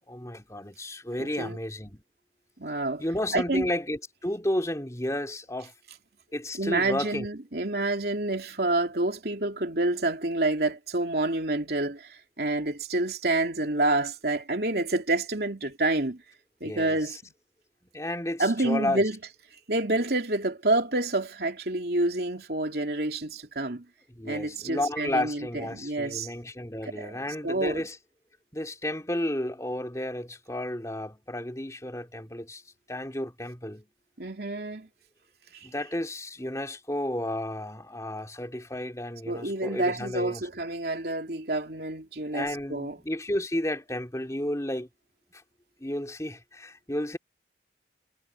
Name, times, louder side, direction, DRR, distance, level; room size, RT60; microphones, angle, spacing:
voice 1, 0.1-2.0 3.0-5.7 6.3-7.3 16.6-17.2 17.9-19.0 24.1-28.0 28.5-32.6 32.9-33.9 35.6-40.5 42.3-44.9 45.3-45.4 45.8-47.2, left 1 dB, 20° left, 3.2 m, -32 dB
voice 2, 1.2-1.6 2.6-3.0 3.3-3.6 6.6-16.2 16.6-17.2 18.4-19.2 19.7-23.8 24.2-26.3 26.9-27.9 34.2-34.9 35.5-35.7 39.3-43.0, right 2 dB, 60° right, 3.2 m, -28 dB
head